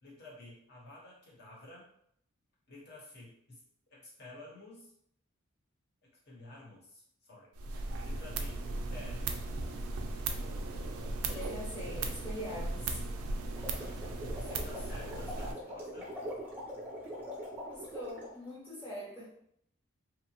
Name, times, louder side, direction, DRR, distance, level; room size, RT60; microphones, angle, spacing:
voice 1, 0.0-1.8 2.7-3.6 3.9-4.9 6.3-7.5 8.0-9.3 13.8-14.0 14.3-16.1, left 2 dB, 45° left, -4 dB, 0.9 m, -51 dB
sound 1, 7.6-15.5, right 2 dB, 85° right, 0.4 m, -37 dB
voice 2, 11.3-13.0 17.7-19.3, equal, 10° left, -8 dB, 0.8 m, -43 dB
sound 2, 13.5-18.4, equal, 10° right, 0.5 m, -43 dB
2.8 x 2.0 x 2.8 m, 0.71 s
head